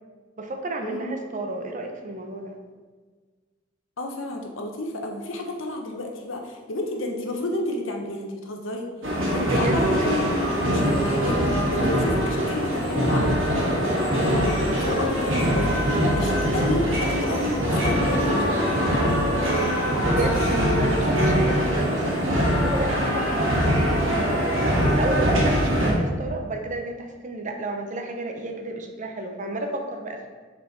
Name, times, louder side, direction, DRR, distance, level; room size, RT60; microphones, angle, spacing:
voice 1, 0.4-2.6 9.4-10.2 20.0-30.3, right 2 dB, 40° right, 3 dB, 0.8 m, -32 dB
voice 2, 4.0-8.9 9.3-19.0, left 1 dB, 85° left, 3 dB, 1.0 m, -31 dB
sound 1, 9.0-25.9, equal, 85° right, 1.6 m, -22 dB
6.6 x 4.4 x 4.5 m, 1.4 s
head